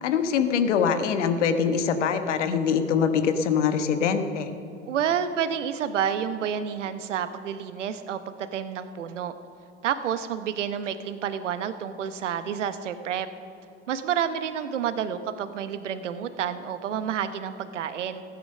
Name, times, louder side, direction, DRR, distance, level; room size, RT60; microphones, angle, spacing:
voice 1, 0.0-4.5, left 6 dB, 75° left, 8 dB, 1.2 m, -23 dB
voice 2, 4.9-9.3 9.8-13.3 13.9-18.2, right 8 dB, 80° right, 11 dB, 1.0 m, -29 dB
15.0 x 10.0 x 6.6 m, 2.5 s
hypercardioid pair, 80°, 36 cm